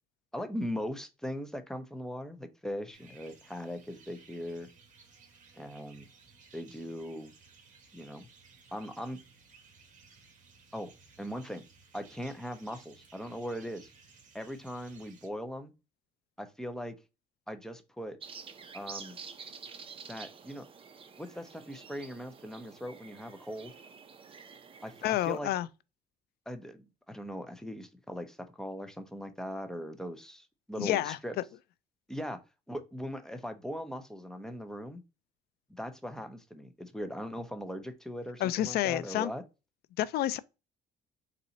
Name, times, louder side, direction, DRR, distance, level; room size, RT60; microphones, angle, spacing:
voice 1, 0.3-4.7 5.6-6.1 6.5-7.3 7.9-8.3 8.7-9.2 10.7-10.9 11.2-11.6 11.9-13.9 14.3-15.7 16.4-17.0 17.5-18.2 18.7-19.2 20.1-20.7 21.2-23.7 24.8-24.9 25.3-25.5 26.5-31.3 32.1-32.4 32.7-35.0 35.7-39.4, equal, 5° left, 0.7 m, -39 dB
sound 1, 2.9-15.3, right 5 dB, 50° right, 1.6 m, -58 dB
sound 2, 18.2-25.4, right 5 dB, 30° right, 0.6 m, -49 dB
voice 2, 25.0-25.7 30.8-31.2 38.4-39.3 40.0-40.4, left 14 dB, 70° left, 0.4 m, -29 dB
4.2 x 2.7 x 3.8 m
cardioid pair, 110°, 17 cm